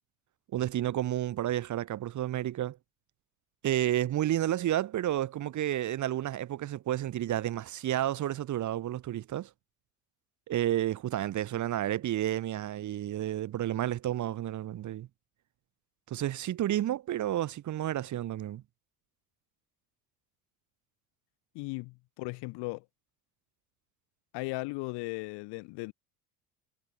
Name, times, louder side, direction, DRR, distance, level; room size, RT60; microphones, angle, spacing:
voice 1, 0.5-2.8 3.6-9.5 10.5-15.1 16.1-18.6, right 12 dB, 40° right, 1.2 m, -31 dB
voice 2, 21.5-22.8 24.3-25.9, left 26 dB, 60° left, 3.3 m, -37 dB
hypercardioid pair, 70°, 45 cm